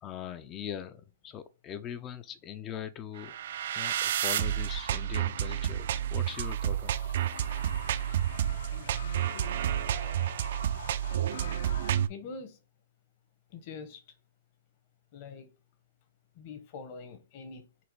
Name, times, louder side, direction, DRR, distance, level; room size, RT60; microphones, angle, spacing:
voice 1, 0.0-3.4 3.7-6.9, left 9 dB, 20° left, 0.4 m, -41 dB
sound 1, 3.2-12.1, right 10 dB, 60° right, 0.4 m, -30 dB
sound 2, 6.9-12.0, left 5 dB, 85° left, 1.1 m, -46 dB
voice 2, 12.1-12.6 13.5-14.0 15.1-15.5 16.4-17.8, left 4 dB, 40° left, 0.9 m, -44 dB
4.1 x 2.8 x 4.6 m
hypercardioid pair, 155°, 0 cm